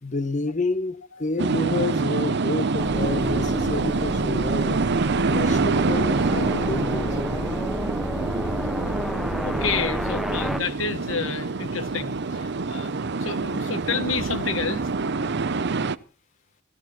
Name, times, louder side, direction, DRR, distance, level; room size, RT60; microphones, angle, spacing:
voice 1, 0.0-4.9 5.3-7.7, left 2 dB, 40° left, 1.2 m, -29 dB
sound 1, 1.4-16.0, right 4 dB, 60° right, 0.7 m, -26 dB
sound 2, 2.8-10.6, equal, ahead, 0.8 m, -30 dB
voice 2, 9.4-12.9 13.2-14.8, left 5 dB, 85° left, 1.2 m, -29 dB
16.5 x 14.0 x 4.3 m
head